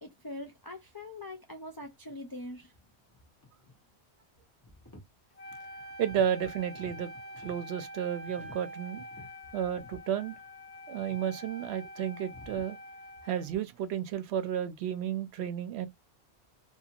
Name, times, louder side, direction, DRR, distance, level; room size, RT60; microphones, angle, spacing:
voice 1, 0.0-2.7, left 1 dB, 40° left, 0.3 m, -43 dB
sound 1, 1.8-2.1 2.6-3.9 4.4-5.1 5.5-6.3 6.6-7.7 8.3-9.4 9.8-10.0 10.3-10.5 10.9-11.3 12.3-12.7, left 2 dB, 20° left, 1.0 m, -53 dB
Wind instrument woodwind instrument, 5.4-13.6, equal, 85° left, 1.2 m, -46 dB
voice 2, 6.0-9.0 9.5-10.4 10.9-12.8 13.2-15.9, right 9 dB, 75° right, 0.8 m, -32 dB
2.6 x 2.4 x 2.7 m
omnidirectional pair, 1.1 m